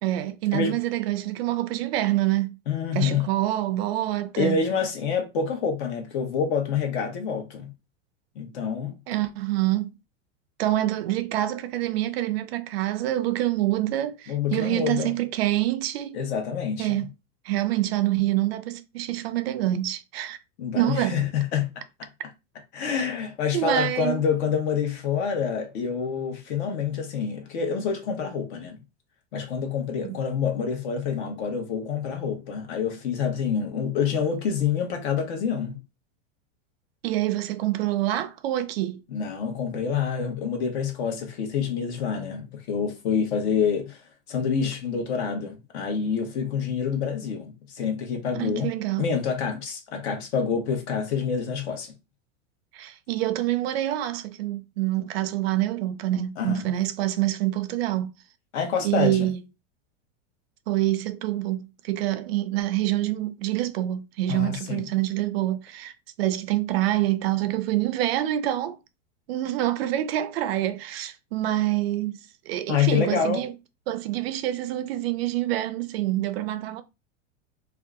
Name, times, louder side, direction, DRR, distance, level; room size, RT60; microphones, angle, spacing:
voice 1, 0.0-2.6 2.9-4.6 9.1-9.9 10.6-16.2 16.8-17.1 17.4-20.4 20.7-21.2 23.5-24.2 37.0-39.0 48.4-49.0 52.7-58.1 58.8-59.4 60.7-68.8 69.3-73.5 73.9-76.8, right 14 dB, 55° right, 0.4 m, -26 dB
voice 2, 2.7-3.3 4.4-7.7 8.3-9.0 14.3-15.1 16.1-17.1 20.6-22.1 22.7-28.8 29.3-35.8 39.1-51.9 56.4-56.7 58.5-59.3 64.3-64.9 72.7-73.4, left 6 dB, 60° left, 1.1 m, -27 dB
2.7 x 2.3 x 3.6 m
supercardioid pair, 160°, 37 cm